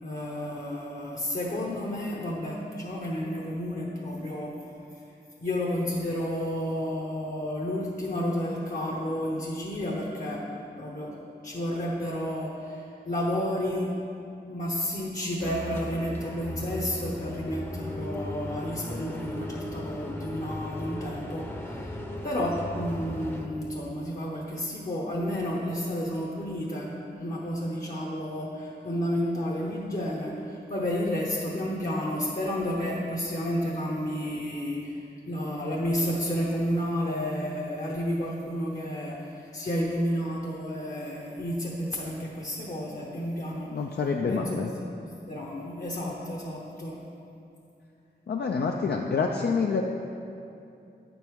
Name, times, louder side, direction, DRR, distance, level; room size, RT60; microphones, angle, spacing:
voice 1, 0.0-4.6 5.4-10.5 10.8-11.1 11.4-13.9 14.5-43.8 44.3-44.6 45.0-47.0, equal, 45° left, -3 dB, 0.8 m, -31 dB
sound 1, 15.4-23.5, left 1 dB, 15° left, 0.7 m, -37 dB
voice 2, 43.7-44.7 48.3-49.8, left 5 dB, 65° left, 1 dB, 0.4 m, -27 dB
8.6 x 5.3 x 4.6 m, 2.7 s
wide cardioid pair, 85°, 18 cm